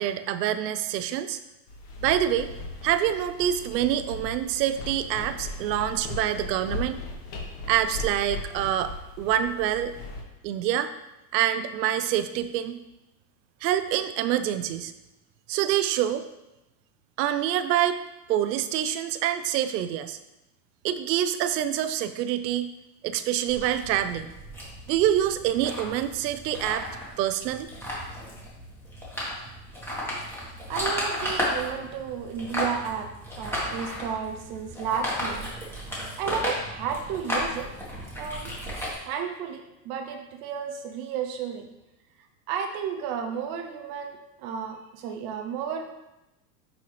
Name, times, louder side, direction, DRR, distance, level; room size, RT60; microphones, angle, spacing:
voice 1, 0.0-1.4 2.0-2.5 2.8-7.0 7.7-8.9 9.2-9.9 10.4-10.9 11.3-12.8 13.6-14.9 15.5-16.2 17.2-18.0 18.3-20.2 20.8-22.7 23.0-24.3 24.9-26.9 27.2-27.7, right 11 dB, 80° right, 11 dB, 0.7 m, -26 dB
sound 1, 1.7-10.2, left 2 dB, 70° left, 1.9 m, -38 dB
sound 2, 23.5-39.0, left 1 dB, 5° left, 1.4 m, -34 dB
voice 2, 30.7-33.1 33.4-35.5 36.2-37.7 38.2-38.5 39.0-41.7 42.5-45.9, right 7 dB, 25° right, 4 dB, 0.3 m, -32 dB
9.8 x 4.2 x 3.3 m, 0.96 s
supercardioid pair, 150°, 50 cm